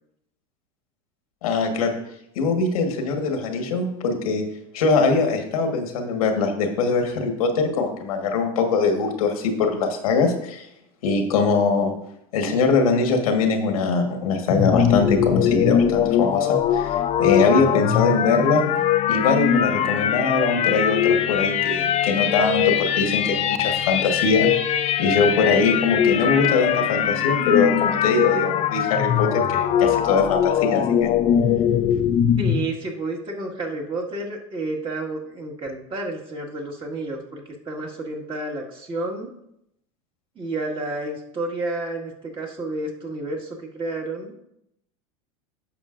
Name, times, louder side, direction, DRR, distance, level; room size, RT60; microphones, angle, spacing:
voice 1, 1.4-1.9 2.3-4.4 4.7-10.7 11.0-11.9 12.3-18.7 19.1-24.5 25.0-31.1, left 4 dB, 90° left, 4 dB, 1.4 m, -22 dB
sound 1, 14.5-32.6, left 9 dB, 35° left, 0.6 m, -21 dB
voice 2, 32.4-39.3 40.4-44.3, right 2 dB, 30° right, -1 dB, 1.9 m, -30 dB
10.5 x 6.7 x 2.5 m, 0.78 s
supercardioid pair, 115°, 18 cm